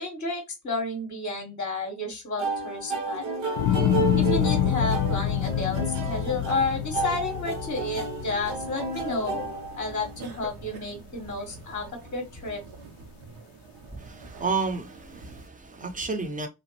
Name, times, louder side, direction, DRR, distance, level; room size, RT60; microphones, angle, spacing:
voice 1, 0.0-3.2 4.1-9.5 9.7-12.6, left 3 dB, 20° left, 0.9 m, -31 dB
sound 1, 2.4-10.3, right 3 dB, 85° right, 0.8 m, -32 dB
sound 2, 3.6-9.9 10.3-10.9, left 10 dB, 55° left, 0.5 m, -27 dB
sound 3, 3.6-15.5, right 4 dB, 55° right, 0.7 m, -45 dB
voice 2, 14.0-16.5, right 4 dB, 20° right, 0.7 m, -31 dB
2.5 x 2.0 x 2.8 m
hypercardioid pair, 50°, 44 cm